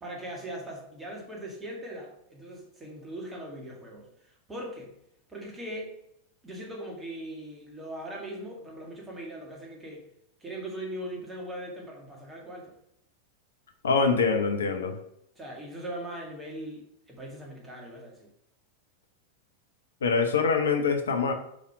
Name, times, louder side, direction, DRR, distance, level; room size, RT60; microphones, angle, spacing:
voice 1, 0.0-4.9 5.3-5.9 6.4-10.1 10.4-12.7 15.4-18.3, right 1 dB, 15° right, -1 dB, 2.1 m, -40 dB
voice 2, 13.8-15.0 20.0-21.3, left 5 dB, 65° left, 6 dB, 0.8 m, -24 dB
5.1 x 5.1 x 4.7 m, 0.76 s
figure-of-eight pair, 90°, 0 cm